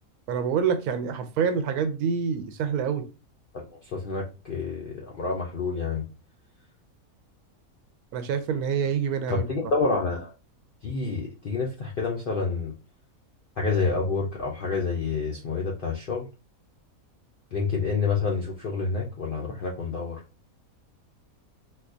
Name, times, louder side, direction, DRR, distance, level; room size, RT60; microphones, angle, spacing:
voice 1, 0.3-3.0 8.1-9.4, right 6 dB, 85° right, 8 dB, 1.1 m, -26 dB
voice 2, 3.5-6.0 9.3-10.3 10.8-12.7 13.6-16.3 17.5-20.2, left 4 dB, 70° left, -1 dB, 0.5 m, -28 dB
4.0 x 2.2 x 2.5 m, 0.31 s
omnidirectional pair, 1.6 m